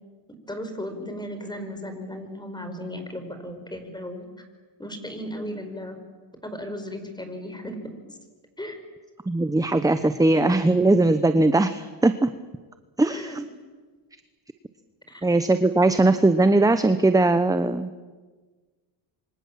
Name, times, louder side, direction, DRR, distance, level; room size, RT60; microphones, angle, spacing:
voice 1, 0.5-4.5 4.8-6.0 6.4-7.9 8.6-8.8 13.1-13.4 15.1-15.3, equal, 10° left, 7 dB, 5.3 m, -35 dB
voice 2, 9.3-12.3 13.0-13.3 15.2-17.9, right 2 dB, 5° right, 10 dB, 0.9 m, -20 dB
27.5 x 25.0 x 7.5 m, 1.4 s
cardioid pair, 105°, 49 cm